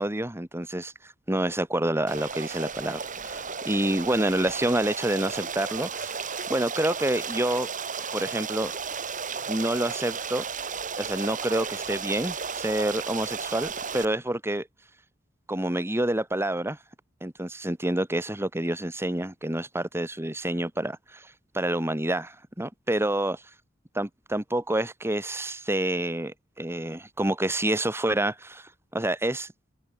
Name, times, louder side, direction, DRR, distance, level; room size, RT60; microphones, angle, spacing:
voice 1, 0.0-6.1 6.5-7.7 8.1-8.7 9.5-10.5 11.0-14.7 15.5-16.8 17.2-23.4 23.9-29.5, right 1 dB, 15° right, 1.8 m, -28 dB
Stream, 2.1-14.0, right 5 dB, 45° right, 7.4 m, -34 dB
head